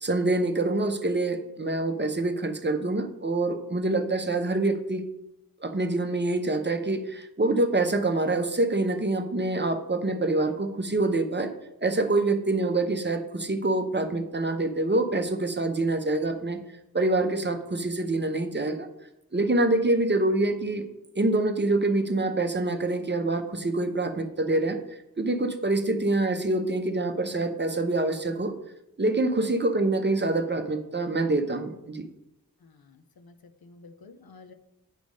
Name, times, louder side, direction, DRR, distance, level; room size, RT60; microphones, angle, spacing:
voice 1, 0.0-5.0 5.6-11.5 11.8-16.6 16.9-18.9 19.3-20.8 21.2-24.8 25.2-28.5 29.0-32.0, right 2 dB, 30° right, 7 dB, 0.7 m, -26 dB
voice 2, 32.6-33.3 33.6-34.5, left 3 dB, 90° left, 8 dB, 0.7 m, -51 dB
9.1 x 3.4 x 5.2 m, 0.87 s
wide cardioid pair, 75°, 36 cm